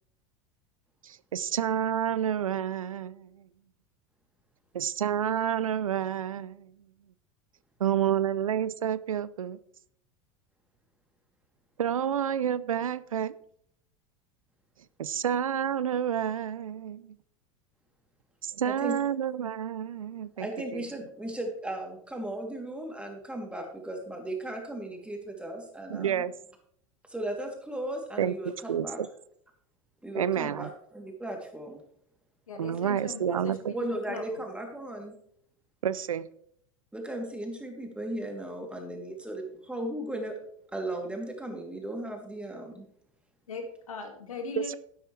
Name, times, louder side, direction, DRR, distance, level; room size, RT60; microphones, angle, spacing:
voice 1, 1.0-3.5 4.7-6.7 7.8-9.6 11.8-13.4 15.0-17.2 18.4-20.5 20.7-20.9 25.9-26.3 28.2-29.1 30.1-30.7 32.6-33.7 35.8-36.3 44.6-44.7, right 9 dB, 85° right, 0.5 m, -29 dB
voice 2, 18.6-18.9 20.1-26.2 27.1-29.0 30.0-31.8 33.7-35.2 36.9-40.3 40.7-42.9, right 1 dB, 5° right, 2.9 m, -36 dB
voice 3, 32.5-33.5 34.1-34.4 43.5-44.8, left 5 dB, 80° left, 2.1 m, -39 dB
11.5 x 11.0 x 3.3 m
hypercardioid pair, 85°, 17 cm